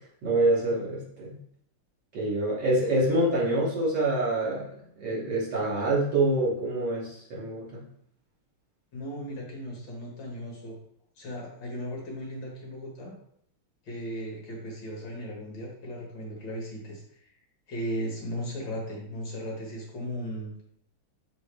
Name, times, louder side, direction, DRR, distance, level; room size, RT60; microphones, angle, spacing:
voice 1, 0.2-1.4 2.1-4.6 5.0-7.8, right 2 dB, 55° right, -6 dB, 3.0 m, -26 dB
voice 2, 8.9-10.8 11.2-13.1 13.9-17.3 17.7-20.5, equal, 60° left, -2 dB, 2.2 m, -36 dB
6.2 x 4.5 x 3.4 m, 0.68 s
omnidirectional pair, 2.4 m